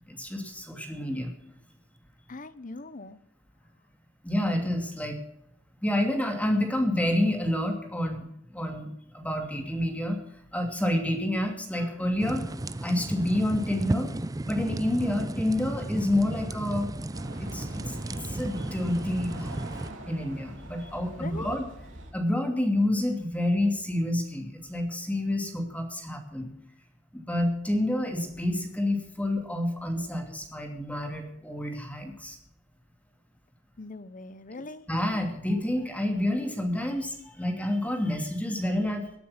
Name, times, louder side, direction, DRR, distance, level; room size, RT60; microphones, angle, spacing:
voice 1, 0.1-1.3 4.2-5.2 5.8-10.2 10.5-12.4 12.8-14.1 14.5-16.9 17.4-18.0 18.2-19.6 20.1-21.7 22.1-26.5 27.1-32.4 34.9-39.0, left 1 dB, 10° left, 4 dB, 2.7 m, -28 dB
voice 2, 2.3-3.2 21.2-21.5 33.8-34.8, left 2 dB, 45° left, 15 dB, 0.9 m, -41 dB
sound 1, 12.2-19.9, right 1 dB, 20° right, 0.5 m, -34 dB
sound 2, 17.1-22.1, right 1 dB, 80° right, 3.4 m, -43 dB
18.5 x 9.2 x 5.9 m, 0.73 s
head